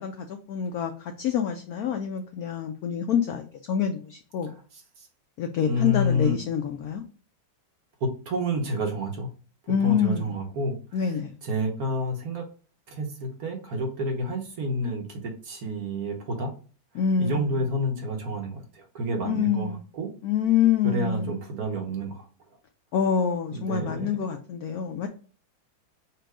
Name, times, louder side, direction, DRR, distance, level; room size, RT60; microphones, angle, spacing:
voice 1, 0.0-4.5 5.4-7.0 9.7-10.3 10.9-11.4 16.9-17.6 19.2-19.8 20.2-21.4 22.9-25.1, left 8 dB, 90° left, 5 dB, 0.8 m, -26 dB
voice 2, 5.7-6.4 8.0-9.3 9.8-10.8 11.4-12.4 12.9-16.5 17.2-20.1 20.8-22.3 23.5-24.2, equal, 55° right, 2 dB, 1.3 m, -29 dB
4.5 x 2.5 x 4.7 m, 0.39 s
omnidirectional pair, 2.2 m